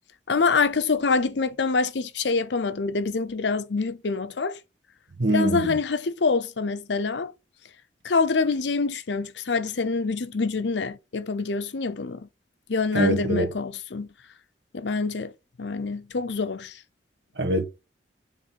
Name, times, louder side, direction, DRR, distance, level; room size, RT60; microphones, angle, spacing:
voice 1, 0.3-4.6 5.3-7.3 8.0-12.3 12.7-14.1 14.7-15.3 15.6-16.8, left 4 dB, 85° left, 0.7 m, -26 dB
voice 2, 5.2-5.8 12.9-13.5 17.4-17.7, right 1 dB, 75° right, 1.4 m, -23 dB
7.5 x 3.7 x 4.6 m
head